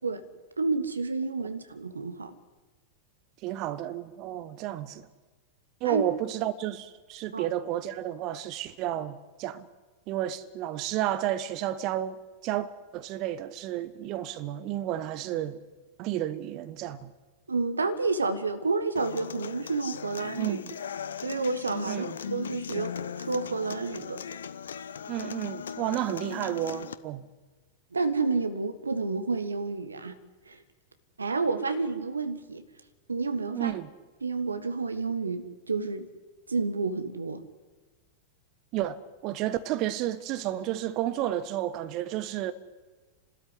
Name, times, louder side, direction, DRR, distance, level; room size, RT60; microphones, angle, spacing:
voice 1, 0.6-2.3 5.8-6.0 7.3-7.5 17.5-20.6 21.2-24.2 27.9-30.2 30.5-30.6 31.2-32.6 33.1-33.7 34.2-36.1 36.5-37.4, right 3 dB, 75° right, 1.5 m, -30 dB
voice 2, 3.4-5.1 5.8-9.7 10.1-12.2 12.4-15.6 16.0-17.1 20.4-20.6 21.8-22.2 25.1-27.3 33.5-33.9 38.7-42.5, right 13 dB, 40° right, 1.3 m, -31 dB
Human voice / Acoustic guitar, 19.0-26.9, left 7 dB, 65° left, 0.8 m, -38 dB
29.0 x 13.0 x 9.9 m
figure-of-eight pair, 90°, 0 cm